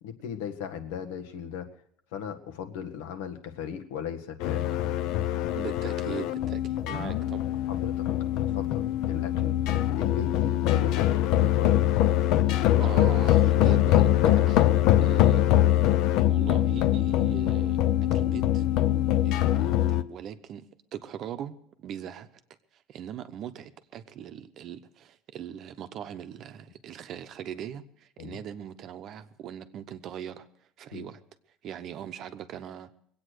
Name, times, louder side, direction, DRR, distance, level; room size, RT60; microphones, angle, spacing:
voice 1, 0.0-1.7 2.1-5.0 7.7-8.1 8.3-9.6 10.0-11.8 28.2-28.4 30.9-31.1, left 8 dB, 85° left, 5 dB, 1.7 m, -37 dB
sound 1, 4.4-20.0, left 13 dB, 50° left, 0.6 m, -23 dB
voice 2, 5.5-7.5 12.8-14.7 15.0-15.5 16.3-17.8 18.1-18.7 19.2-20.7 20.9-22.3 22.7-30.5 30.8-31.2 31.6-32.9, right 9 dB, 35° right, 9 dB, 0.8 m, -40 dB
22.5 x 8.7 x 6.5 m, 0.68 s
cardioid pair, 170°, 0 cm